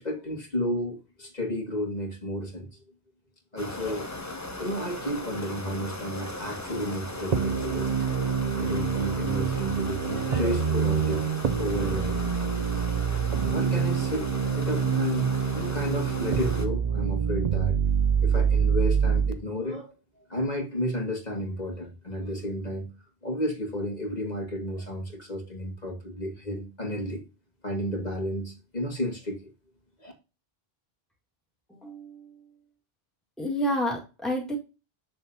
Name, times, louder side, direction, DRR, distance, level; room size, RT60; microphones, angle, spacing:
voice 1, 0.0-2.8 3.5-4.1 4.6-8.1 8.6-11.2 11.6-12.2 13.5-14.3 14.6-17.8 18.2-20.0 20.3-22.9 23.2-27.2 27.6-29.4 30.0-30.1, equal, 45° left, 2.2 m, -32 dB
sound 1, 3.6-16.7, left 2 dB, 20° left, 0.9 m, -37 dB
sound 2, 7.3-19.3, right 7 dB, 45° right, 0.7 m, -26 dB
voice 2, 31.7-32.4 33.4-34.6, equal, ahead, 1.8 m, -30 dB
7.3 x 6.7 x 2.8 m
omnidirectional pair, 1.0 m